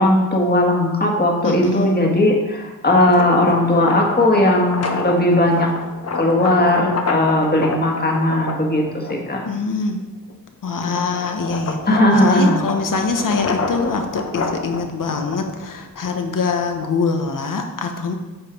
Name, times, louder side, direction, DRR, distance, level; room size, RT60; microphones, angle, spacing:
voice 1, 0.0-5.7 6.1-9.5 11.9-12.6, left 1 dB, 25° left, 0 dB, 1.8 m, -17 dB
voice 2, 1.4-2.0 9.4-10.0 10.6-18.1, left 4 dB, 60° left, 5 dB, 1.2 m, -23 dB
sound 1, 3.0-9.5 10.0-17.2, left 4 dB, 45° left, 1.0 m, -28 dB
9.4 x 5.5 x 4.6 m, 1.1 s
cardioid pair, 90°, 35 cm